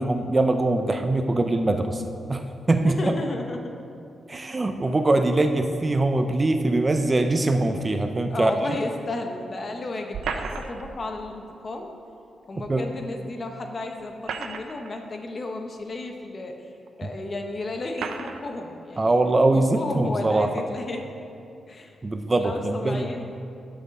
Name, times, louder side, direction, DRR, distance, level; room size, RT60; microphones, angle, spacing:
voice 1, 0.0-3.1 4.3-8.8 12.6-12.8 17.0-17.1 19.0-20.5 22.0-23.1, right 2 dB, 25° right, 6 dB, 0.5 m, -23 dB
voice 2, 2.8-3.7 8.3-11.9 12.5-16.5 17.0-19.1 19.5-21.0 21.7-21.9 22.4-23.3, left 2 dB, 35° left, 3 dB, 1.0 m, -33 dB
sound 1, 10.1-11.0 12.7-12.8 14.0-14.9 15.8-15.9 16.9-17.0 17.9-18.4, right 5 dB, 85° right, 0.7 m, -33 dB
10.0 x 5.4 x 7.1 m, 2.5 s
wide cardioid pair, 120°, 0 cm